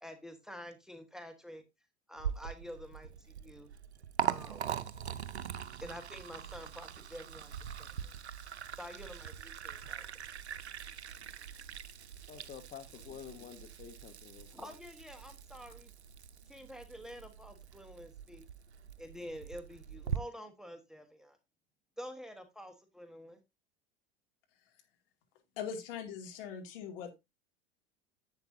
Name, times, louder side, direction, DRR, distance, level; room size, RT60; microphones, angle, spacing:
voice 1, 0.0-1.6 2.1-3.7 4.2-4.6 5.8-7.5 7.8-8.1 8.8-10.0 14.5-15.9 16.5-18.4 19.0-21.4 22.0-23.4, equal, ahead, 1.3 m, -48 dB
Liquid, 2.2-20.2, right 8 dB, 75° right, 0.7 m, -42 dB
voice 2, 12.3-14.7, left 8 dB, 25° left, 1.1 m, -49 dB
voice 3, 25.6-27.1, left 7 dB, 55° left, 2.5 m, -41 dB
10.5 x 8.0 x 2.7 m
figure-of-eight pair, 80°, 33 cm